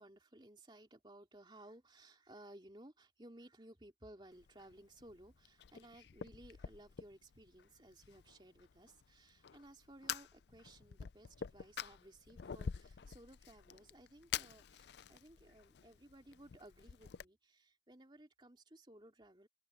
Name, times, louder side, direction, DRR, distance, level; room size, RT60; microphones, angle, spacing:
voice 1, 0.0-19.5, right 1 dB, 25° right, 2.7 m, -59 dB
Fire, 4.3-17.2, left 8 dB, 70° left, 0.4 m, -48 dB
open air
head